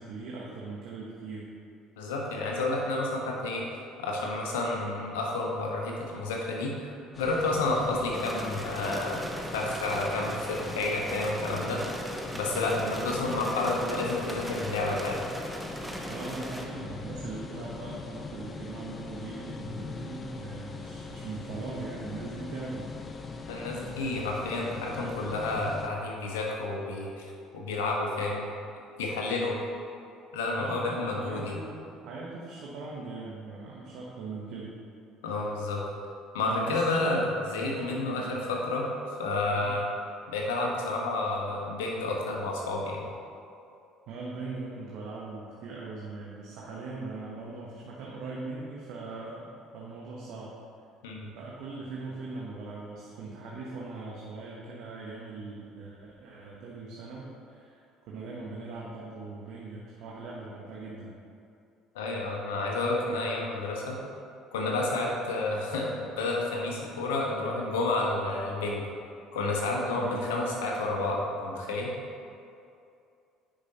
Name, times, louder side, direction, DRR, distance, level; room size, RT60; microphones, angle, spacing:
voice 1, 0.0-1.5 12.8-13.1 16.1-22.9 30.6-34.7 36.4-37.4 37.8-38.3 39.6-39.7 44.1-50.5 51.3-57.8 58.1-61.1 70.0-70.3, right 3 dB, 70° right, -4 dB, 1.0 m, -40 dB
voice 2, 2.0-3.6 4.0-9.2 9.5-11.8 12.3-15.2 23.5-28.5 29.0-29.6 30.3-31.6 35.2-35.8 36.3-38.8 39.2-39.9 40.3-43.0 51.0-51.3 61.9-64.0 64.5-68.8 69.3-71.9, left 2 dB, 85° left, -2 dB, 1.2 m, -30 dB
sound 1, 7.1-25.9, left 4 dB, 35° left, 0.6 m, -41 dB
sound 2, 8.1-16.7, right 1 dB, 5° right, 1.0 m, -39 dB
10.5 x 5.0 x 2.9 m, 2.5 s
hypercardioid pair, 65°, 0 cm